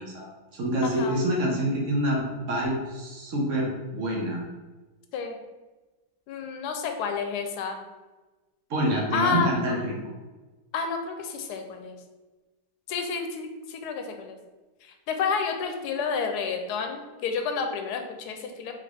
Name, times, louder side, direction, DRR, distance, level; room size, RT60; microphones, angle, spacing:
voice 1, 0.0-4.4 8.7-10.1, right 1 dB, 55° right, -2 dB, 1.1 m, -27 dB
voice 2, 0.8-1.2 5.1-5.4 6.3-7.8 9.1-9.5 10.7-11.9 12.9-14.4 14.8-18.7, left 5 dB, 80° left, 5 dB, 1.1 m, -30 dB
3.8 x 3.7 x 3.5 m, 1.2 s
omnidirectional pair, 1.8 m